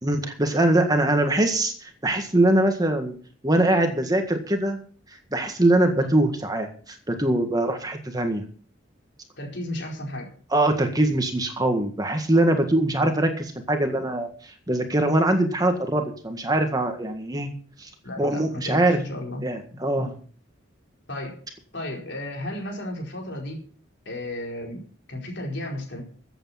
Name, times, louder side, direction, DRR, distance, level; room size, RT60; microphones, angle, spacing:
voice 1, 0.0-3.1 3.4-4.8 5.3-8.4 10.5-17.5 17.8-17.9 18.2-19.0 19.4-20.1, right 1 dB, 20° right, 5 dB, 1.7 m, -22 dB
voice 2, 9.4-10.3 12.9-13.2 18.0-19.4 19.7-20.1 21.1-21.4 21.7-23.6 24.0-26.0, left 1 dB, 60° left, 1 dB, 4.7 m, -34 dB
15.0 x 8.4 x 5.8 m, 0.43 s
head